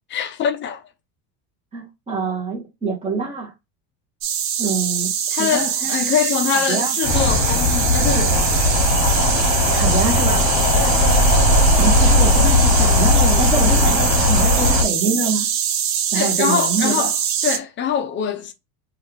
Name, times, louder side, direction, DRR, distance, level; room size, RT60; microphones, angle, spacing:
voice 1, 0.1-0.8 5.3-8.6 10.8-11.0 16.1-17.2 17.4-18.5, left 8 dB, 25° left, 0.4 m, -23 dB
voice 2, 1.7-3.5 4.6-5.1 5.4-6.0 6.7-7.0 9.7-10.5 11.8-15.5 16.1-17.1, right 3 dB, 15° right, 0.9 m, -25 dB
sound 1, 4.2-17.6, right 9 dB, 40° right, 0.5 m, -23 dB
sound 2, 7.0-14.8, left 2 dB, 40° left, 1.0 m, -17 dB
3.1 x 2.4 x 3.1 m
supercardioid pair, 125°, 45 cm